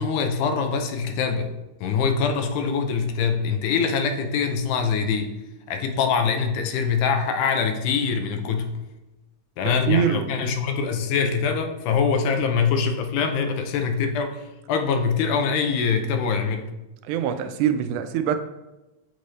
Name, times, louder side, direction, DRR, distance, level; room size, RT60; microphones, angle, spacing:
voice 1, 0.0-1.5 1.8-5.3 5.7-8.7 9.6-16.7, left 5 dB, 90° left, 6 dB, 2.2 m, -24 dB
voice 2, 9.6-10.4 17.1-18.4, right 9 dB, 90° right, 9 dB, 2.0 m, -24 dB
8.4 x 3.3 x 4.0 m, 1.0 s
omnidirectional pair, 3.5 m